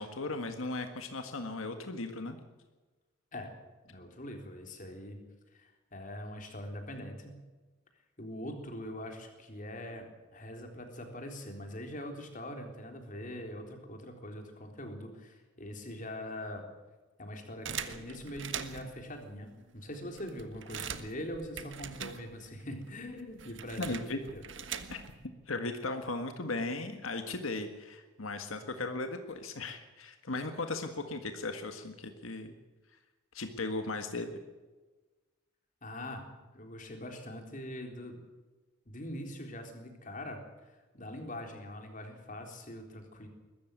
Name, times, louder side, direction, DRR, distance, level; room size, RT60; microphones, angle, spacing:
voice 1, 0.0-2.4 23.8-24.2 24.9-25.0 25.5-32.5 33.3-34.4, left 2 dB, 90° left, 7 dB, 1.7 m, -37 dB
voice 2, 3.9-5.2 5.5-7.4 8.2-10.1 10.3-16.7 17.2-24.4 35.8-38.2 38.9-43.3, left 1 dB, 40° left, 4 dB, 3.8 m, -43 dB
sound 1, 17.6-19.0 19.6-19.7 19.9-22.6 22.9-25.2, right 7 dB, 65° right, 1.4 m, -42 dB
22.0 x 13.5 x 9.2 m, 1.2 s
head